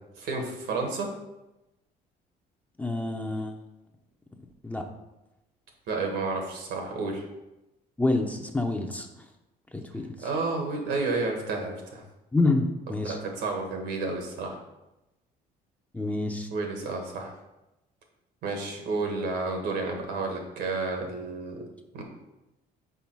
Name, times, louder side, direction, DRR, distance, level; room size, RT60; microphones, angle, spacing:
voice 1, 0.2-1.1 5.9-7.2 10.2-12.0 13.0-14.6 16.5-17.3 18.4-21.6 21.9-22.0, right 3 dB, 80° right, 2 dB, 1.7 m, -31 dB
voice 2, 2.8-3.5 4.6-4.8 8.0-9.1 9.7-10.3 12.3-13.2 15.9-16.5, left 2 dB, 10° left, 3 dB, 0.7 m, -27 dB
5.6 x 4.8 x 4.6 m, 0.96 s
cardioid pair, 110°, 17 cm